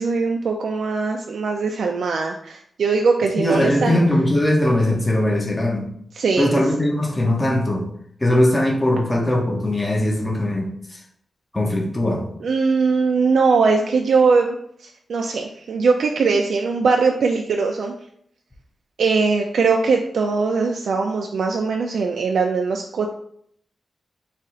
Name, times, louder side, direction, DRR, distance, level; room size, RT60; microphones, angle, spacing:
voice 1, 0.0-4.0 6.1-6.6 12.4-14.5 14.8-17.9 19.0-23.1, right 4 dB, 80° right, 2 dB, 0.3 m, -20 dB
voice 2, 3.4-5.9 6.4-7.8 8.2-11.0 11.5-12.3, left 1 dB, 15° left, -1 dB, 0.6 m, -20 dB
4.2 x 2.4 x 3.7 m, 0.67 s
wide cardioid pair, 170°, 0 cm